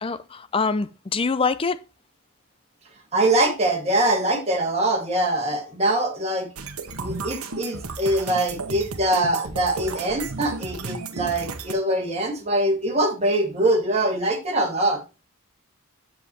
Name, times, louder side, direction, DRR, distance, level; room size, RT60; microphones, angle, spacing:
voice 1, 0.0-1.8, left 4 dB, 25° left, 0.5 m, -25 dB
voice 2, 3.1-6.5 7.0-15.0, right 1 dB, 30° right, 2.2 m, -23 dB
sound 1, 6.6-11.7, right 3 dB, 75° right, 1.1 m, -33 dB
7.8 x 7.2 x 3.1 m
head